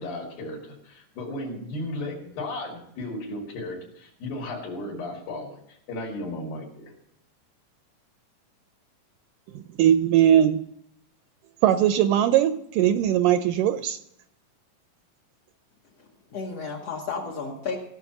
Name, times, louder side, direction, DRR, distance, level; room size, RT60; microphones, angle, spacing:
voice 1, 0.0-6.9, left 1 dB, 85° left, -2 dB, 4.3 m, -35 dB
voice 2, 9.5-10.6 11.6-14.0, right 10 dB, 80° right, 10 dB, 2.0 m, -20 dB
voice 3, 16.0-17.8, left 4 dB, 60° left, -2 dB, 1.8 m, -33 dB
16.5 x 6.0 x 5.9 m, 0.77 s
omnidirectional pair, 4.0 m